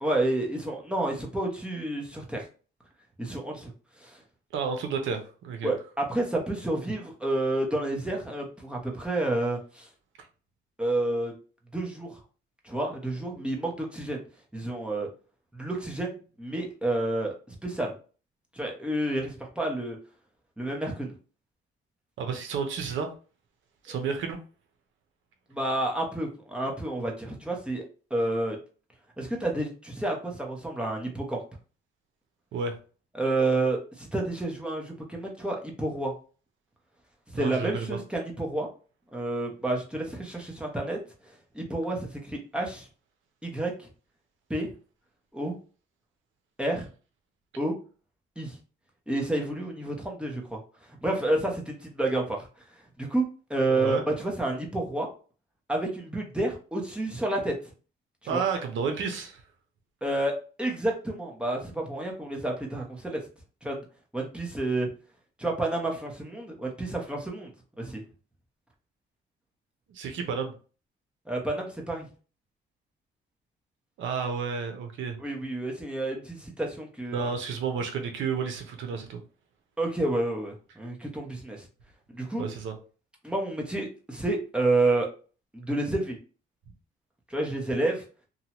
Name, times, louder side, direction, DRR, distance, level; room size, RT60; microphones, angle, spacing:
voice 1, 0.0-2.4 3.2-3.7 4.0-4.2 5.6-9.9 10.8-11.3 11.7-12.2 12.6-14.2 14.5-15.1 15.5-17.9 18.5-20.0 20.6-21.1 25.5-27.8 28.1-28.6 29.2-31.4 33.1-36.1 37.3-38.7 39.1-41.0 41.5-42.9 43.4-43.9 44.5-44.7 45.3-45.6 46.6-46.9 47.6-47.8 48.4-48.6 49.1-50.6 51.0-52.4 53.0-53.2 53.5-55.1 55.7-57.5 58.2-58.4 60.0-63.2 63.6-63.9 64.1-64.9 65.4-67.5 67.8-68.0 71.3-72.1 75.2-77.3 79.8-81.6 82.1-82.5 83.2-85.1 85.5-86.2 87.3-88.0, right 2 dB, 5° right, -1 dB, 0.8 m, -29 dB
voice 2, 4.5-5.7 22.2-23.1 23.8-24.4 32.5-32.8 37.3-38.0 53.7-54.0 58.3-59.4 69.9-70.5 74.0-75.2 77.1-79.2 82.4-82.7, right 5 dB, 75° right, 5 dB, 0.7 m, -31 dB
2.7 x 2.2 x 2.9 m, 0.37 s
cardioid pair, 90°, 20 cm